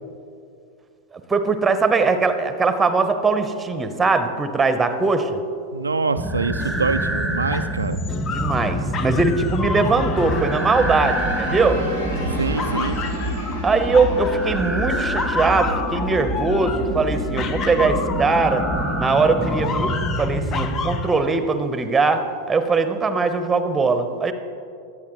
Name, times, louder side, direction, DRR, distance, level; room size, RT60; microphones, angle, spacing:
voice 1, 1.1-5.4 8.3-11.8 13.6-18.7 19.0-24.3, right 4 dB, 15° right, 9 dB, 0.9 m, -21 dB
voice 2, 5.7-8.0 12.2-13.0, right 4 dB, 75° right, 8 dB, 0.3 m, -25 dB
sound 1, 6.2-21.0, equal, 5° left, 1.3 m, -26 dB
sound 2, 6.6-11.6 12.1-14.6 14.9-19.0 19.4-21.2, left 5 dB, 30° left, 0.7 m, -31 dB
sound 3, 9.5-16.2, equal, 70° left, 3.1 m, -35 dB
21.5 x 8.8 x 3.2 m, 2.5 s
figure-of-eight pair, 90°, 0 cm